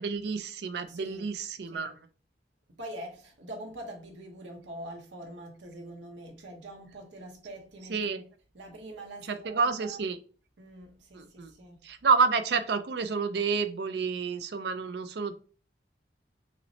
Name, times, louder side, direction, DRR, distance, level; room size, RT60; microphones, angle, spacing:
voice 1, 0.0-1.9 7.9-8.2 9.3-10.2 11.1-11.5 11.8-15.3, right 5 dB, 65° right, 0.4 m, -29 dB
voice 2, 0.9-1.3 1.7-1.9 2.7-8.2 8.5-10.0 10.6-11.8, right 1 dB, 90° right, 0.9 m, -44 dB
5.7 x 2.1 x 2.7 m
head